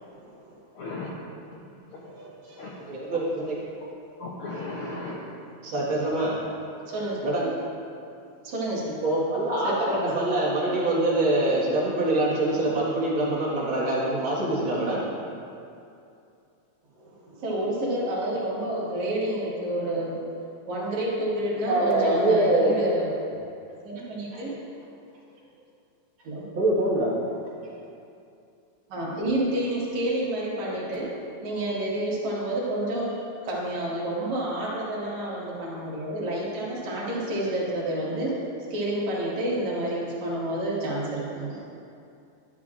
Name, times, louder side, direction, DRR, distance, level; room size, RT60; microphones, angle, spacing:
voice 1, 0.7-1.1 1.5-2.2 2.6-2.8 3.1-3.2 4.2-5.3, left 2 dB, 70° left, -4 dB, 1.3 m, -37 dB
voice 2, 2.0-2.7 5.7-5.8 6.9-7.2 8.4-9.0 9.6-10.3 17.0-20.3 20.7-23.1 23.8-24.6 26.2-26.5 28.9-31.1 31.4-38.4 38.7-41.6, right 1 dB, 70° right, -6 dB, 2.9 m, -29 dB
voice 3, 2.9-3.5 5.6-6.3 7.2-7.5 9.0-15.0 21.7-22.7 24.3-24.4 26.5-27.1 34.2-34.3, right 1 dB, 45° right, -7 dB, 2.2 m, -24 dB
11.5 x 9.7 x 2.5 m, 2.5 s
omnidirectional pair, 3.4 m